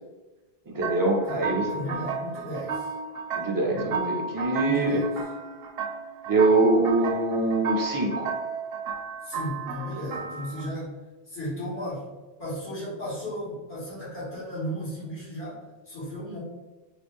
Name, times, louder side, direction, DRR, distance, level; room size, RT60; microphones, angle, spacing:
voice 1, 0.7-1.7 3.3-5.0 6.3-8.3, right 2 dB, 25° right, -1 dB, 0.6 m, -23 dB
sound 1, 0.8-10.7, right 5 dB, 70° right, 0.8 m, -33 dB
voice 2, 1.7-2.9 4.6-5.1 9.2-10.9 11.2-12.1 12.4-16.4, equal, 85° left, -10 dB, 1.9 m, -35 dB
3.9 x 2.2 x 3.5 m, 1.1 s
omnidirectional pair, 1.0 m